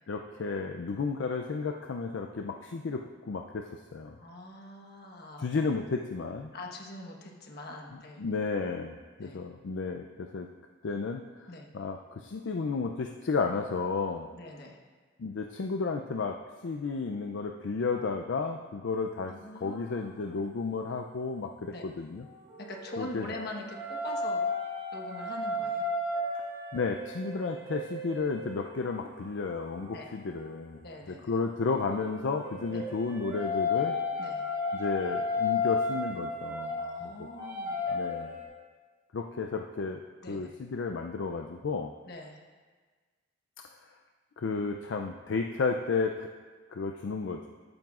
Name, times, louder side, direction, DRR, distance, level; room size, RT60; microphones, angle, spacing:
voice 1, 0.1-4.2 5.4-6.5 8.2-10.5 10.8-11.2 11.7-14.3 15.2-16.4 16.6-19.3 19.6-22.2 23.0-23.2 26.7-30.8 31.3-34.0 34.7-36.8 37.0-37.1 37.9-38.3 39.1-40.0 40.3-41.9 44.4-46.3 46.7-47.5, left 4 dB, 70° left, 3 dB, 0.4 m, -32 dB
voice 2, 4.2-5.6 6.5-8.2 9.2-9.4 11.5-11.7 14.3-14.8 19.2-20.4 21.7-21.9 22.6-24.4 24.9-25.9 29.9-30.2 30.8-31.4 32.7-32.8 34.2-34.4 36.8-37.9 40.2-40.5 42.0-42.4, left 1 dB, 55° left, 1 dB, 1.2 m, -43 dB
sound 1, 22.2-30.5 31.7-38.4, left 3 dB, 15° right, 1.7 m, -34 dB
13.5 x 8.8 x 2.4 m, 1.4 s
head